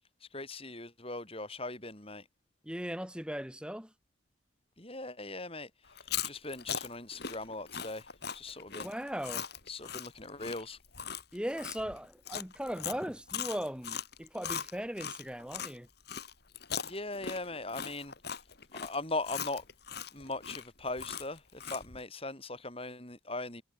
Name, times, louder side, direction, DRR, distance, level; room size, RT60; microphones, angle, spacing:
voice 1, 0.2-2.3 4.8-5.7 6.0-8.1 8.3-8.9 9.7-10.8 16.8-18.1 18.7-19.6 20.1-23.6, left 2 dB, 30° left, 5.3 m, -39 dB
voice 2, 2.6-3.9 8.8-9.5 11.3-15.9, equal, 5° right, 4.7 m, -38 dB
Chewing mastication, 5.9-15.7 16.1-22.0, left 8 dB, 50° left, 2.6 m, -40 dB
head